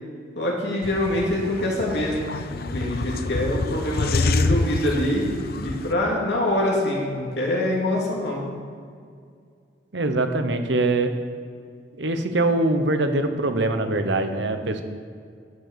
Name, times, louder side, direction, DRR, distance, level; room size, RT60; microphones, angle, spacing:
voice 1, 0.4-5.3 5.5-8.4, left 1 dB, 70° left, -3 dB, 3.0 m, -25 dB
sound 1, 0.8-5.9, left 3 dB, 55° left, 0.6 m, -27 dB
voice 2, 9.9-11.1 12.0-14.8, right 2 dB, 85° right, 8 dB, 1.0 m, -23 dB
12.5 x 6.6 x 6.9 m, 2.2 s
head